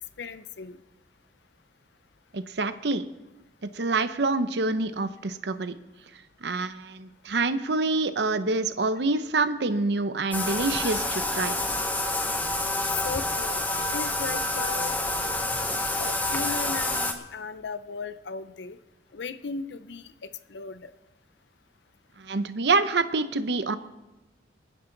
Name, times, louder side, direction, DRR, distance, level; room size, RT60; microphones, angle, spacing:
voice 1, 0.2-0.8 13.0-15.0 16.0-18.8 19.1-20.9, left 4 dB, 75° left, 13 dB, 0.6 m, -37 dB
voice 2, 2.3-3.1 3.6-5.8 6.4-11.5 22.2-23.8, right 3 dB, 70° right, 11 dB, 0.8 m, -26 dB
Bathtub (filling or washing), 10.3-17.1, left 2 dB, 10° left, 0.9 m, -28 dB
23.0 x 9.9 x 3.9 m, 1.0 s
head